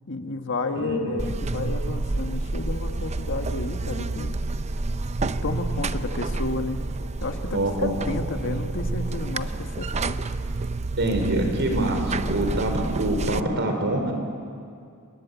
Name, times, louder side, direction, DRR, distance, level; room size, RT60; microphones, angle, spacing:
voice 1, 0.1-4.4 5.2-6.8 7.2-10.2, left 2 dB, 60° left, 5 dB, 1.7 m, -31 dB
voice 2, 0.7-1.2 7.5-7.9 8.2-8.6 11.0-14.1, right 1 dB, 55° right, 4 dB, 4.5 m, -25 dB
Buzz, 1.2-13.4, right 3 dB, 30° right, 0.6 m, -29 dB
27.5 x 22.0 x 8.4 m, 2.3 s
head